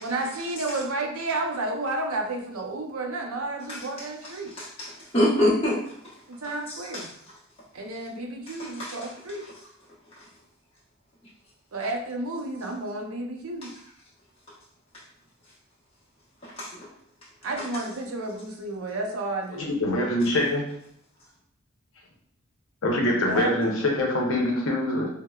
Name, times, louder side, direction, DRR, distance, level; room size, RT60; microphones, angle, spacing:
voice 1, 0.0-4.6 6.3-7.1 7.7-9.5 11.7-13.7 17.4-19.8 23.2-23.7, right 2 dB, 90° right, 1 dB, 0.6 m, -31 dB
voice 2, 4.6-5.8 6.7-7.0 8.6-9.0 16.6-16.7, left 1 dB, 25° left, -7 dB, 0.9 m, -25 dB
voice 3, 19.6-20.7 22.8-25.1, left 1 dB, 75° left, -1 dB, 0.8 m, -24 dB
4.5 x 2.1 x 2.3 m, 0.69 s
head